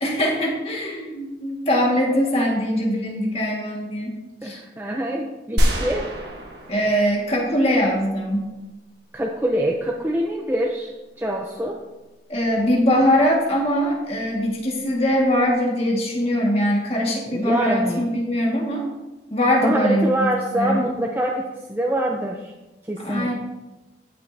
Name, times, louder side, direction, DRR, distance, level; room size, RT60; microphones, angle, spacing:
voice 1, 0.0-4.1 4.4-4.6 6.7-8.5 12.3-18.8 19.3-20.8 23.0-23.3, equal, 35° left, -2 dB, 1.8 m, -22 dB
voice 2, 4.4-6.1 9.1-11.8 17.3-18.1 19.6-22.5 22.8-23.3, right 1 dB, 10° right, -1 dB, 0.6 m, -25 dB
sound 1, 5.6-7.8, equal, 70° right, 1.5 m, -25 dB
16.0 x 5.5 x 2.8 m, 1.1 s
head